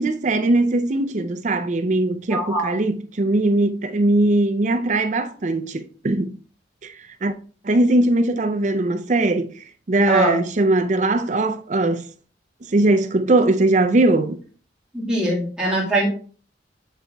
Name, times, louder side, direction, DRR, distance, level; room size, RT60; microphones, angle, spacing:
voice 1, 0.0-6.4 6.8-6.9 7.2-7.3 7.6-9.5 9.9-12.1 12.7-14.4, right 2 dB, 40° right, 0.5 m, -20 dB
voice 2, 2.3-2.7 10.1-10.4 14.9-16.1, right 1 dB, 5° right, 1.7 m, -22 dB
7.2 x 6.6 x 2.3 m
head